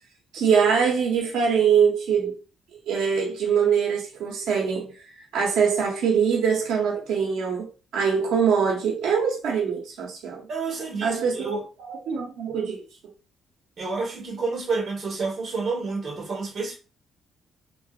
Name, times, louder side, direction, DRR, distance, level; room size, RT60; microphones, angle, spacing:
voice 1, 0.3-2.3 2.9-4.9 5.3-7.7 7.9-10.5 11.0-11.5 11.9-12.8, right 6 dB, 85° right, 0.9 m, -23 dB
voice 2, 10.5-11.6 13.8-16.8, right 4 dB, 35° right, 1.4 m, -29 dB
3.6 x 2.4 x 2.5 m
cardioid pair, 160°, 0 cm